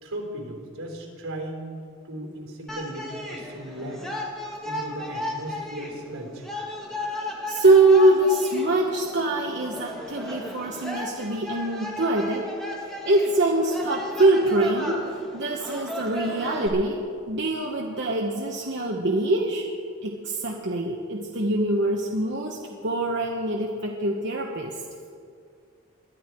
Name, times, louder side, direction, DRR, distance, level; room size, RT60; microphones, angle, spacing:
voice 1, 0.0-1.7 2.1-4.0 4.6-6.4, right 1 dB, 75° right, 1 dB, 3.7 m, -36 dB
sound 1, 2.7-16.7, left 1 dB, ahead, 1.9 m, -35 dB
voice 2, 7.5-12.5 13.0-15.0 15.3-17.0 17.3-19.6 20.0-24.7, right 2 dB, 55° right, -1 dB, 1.1 m, -23 dB
22.0 x 11.5 x 4.6 m, 2.3 s
head